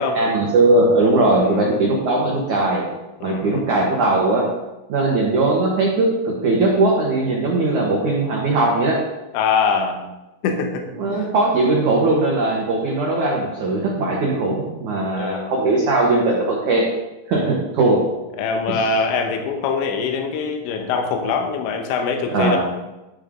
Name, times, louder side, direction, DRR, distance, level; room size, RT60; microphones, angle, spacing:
voice 1, 0.0-2.8 3.2-4.6 4.9-9.0 11.0-16.9 17.3-18.1 18.7-18.8 22.3-22.6, right 2 dB, 70° right, -3 dB, 1.8 m, -19 dB
voice 2, 3.2-3.7 9.3-10.0 10.4-10.8 15.2-15.5 18.4-22.6, left 5 dB, 75° left, 4 dB, 3.2 m, -23 dB
12.0 x 8.8 x 3.9 m, 1.0 s
omnidirectional pair, 5.8 m